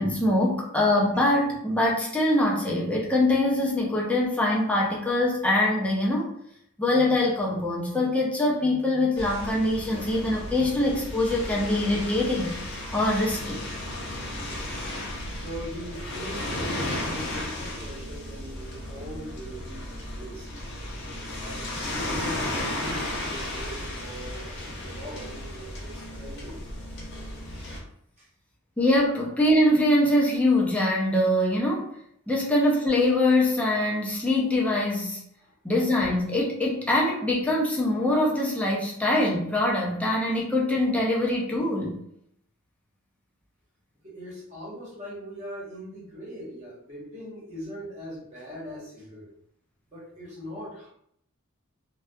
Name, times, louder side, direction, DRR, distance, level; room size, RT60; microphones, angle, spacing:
voice 1, 0.0-6.3 6.8-12.5 12.9-13.6 28.8-31.9 32.3-35.2 35.6-42.0, left 1 dB, 5° left, -3 dB, 0.4 m, -23 dB
sound 1, 9.2-27.8, left 1 dB, 50° left, 0.6 m, -34 dB
voice 2, 15.3-20.5 21.4-24.5 24.7-26.6 28.2-28.3 35.4-35.5 44.0-49.3 49.9-50.9, equal, 35° right, -6 dB, 1.0 m, -40 dB
2.6 x 2.2 x 2.2 m, 0.72 s
head